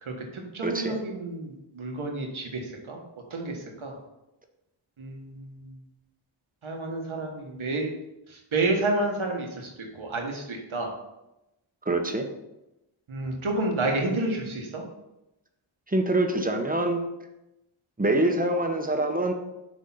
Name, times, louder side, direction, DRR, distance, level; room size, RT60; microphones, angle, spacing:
voice 1, 0.0-3.0 3.3-4.0 5.0-5.7 6.6-7.9 8.3-10.9 13.1-14.8, right 2 dB, 75° right, 1 dB, 1.5 m, -30 dB
voice 2, 0.6-1.0 11.9-12.3 15.9-17.0 18.0-19.3, right 2 dB, 15° right, 4 dB, 1.0 m, -25 dB
6.4 x 3.7 x 5.6 m, 0.93 s
wide cardioid pair, 60°, 49 cm